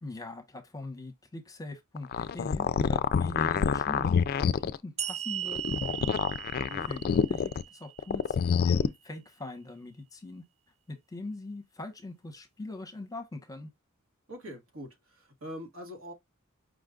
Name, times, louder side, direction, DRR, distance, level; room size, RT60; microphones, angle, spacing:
voice 1, 0.0-4.1 4.6-6.2 6.8-10.4 10.9-13.7, left 2 dB, 15° left, 0.9 m, -41 dB
sound 1, 2.0-4.8 5.5-7.6 8.0-8.9, left 6 dB, 45° left, 0.3 m, -27 dB
sound 2, 5.0-8.4, right 10 dB, 30° right, 0.5 m, -38 dB
voice 2, 6.6-6.9 14.3-16.1, equal, 85° right, 1.6 m, -43 dB
5.1 x 2.3 x 3.7 m
head